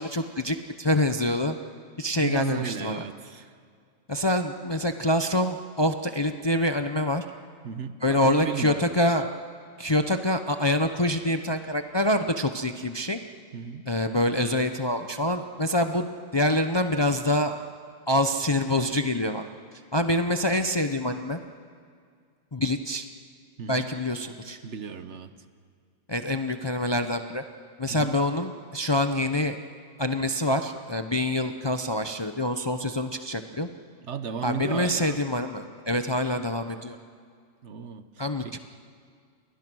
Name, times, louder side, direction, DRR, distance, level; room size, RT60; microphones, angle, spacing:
voice 1, 0.0-1.6 2.0-3.0 4.1-7.2 8.0-9.3 9.8-13.2 13.9-16.1 16.3-17.6 18.1-19.5 19.9-21.4 22.5-23.1 23.7-24.6 26.1-27.4 27.8-29.6 30.0-33.7 34.4-37.0 38.2-38.6, left 1 dB, 25° left, 7 dB, 0.6 m, -26 dB
voice 2, 2.1-3.5 7.6-9.2 13.5-13.8 23.6-23.9 24.6-25.3 27.9-28.2 34.0-35.2 37.6-38.5, right 7 dB, 60° right, 11 dB, 1.2 m, -35 dB
29.5 x 22.0 x 6.2 m, 2.1 s
omnidirectional pair, 1.4 m